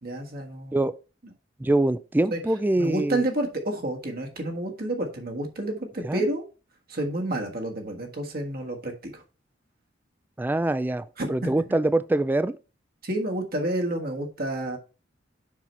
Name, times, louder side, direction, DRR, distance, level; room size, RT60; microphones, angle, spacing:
voice 1, 0.0-0.9 2.3-2.4 2.8-6.5 6.9-9.2 11.2-11.5 13.0-14.8, right 1 dB, 55° right, 1.5 m, -30 dB
voice 2, 1.6-3.2 6.0-6.2 10.4-12.6, right 2 dB, 10° right, 0.3 m, -24 dB
7.3 x 5.8 x 3.3 m
head